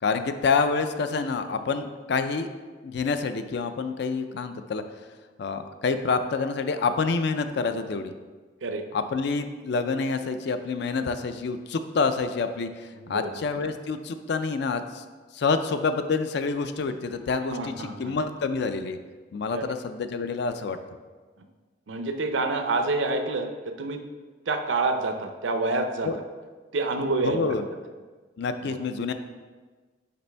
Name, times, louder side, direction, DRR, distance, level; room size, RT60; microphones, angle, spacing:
voice 1, 0.0-2.5 2.8-4.8 5.4-8.1 8.9-15.0 15.3-19.0 19.3-20.8 26.0-26.2 27.2-27.6 28.4-29.1, left 4 dB, 60° left, 9 dB, 0.4 m, -27 dB
voice 2, 17.4-18.2 19.5-19.6 21.9-24.0 24.5-26.1 26.7-27.6 28.6-28.8, right 3 dB, 85° right, 6 dB, 0.6 m, -27 dB
6.7 x 5.2 x 3.3 m, 1.4 s
head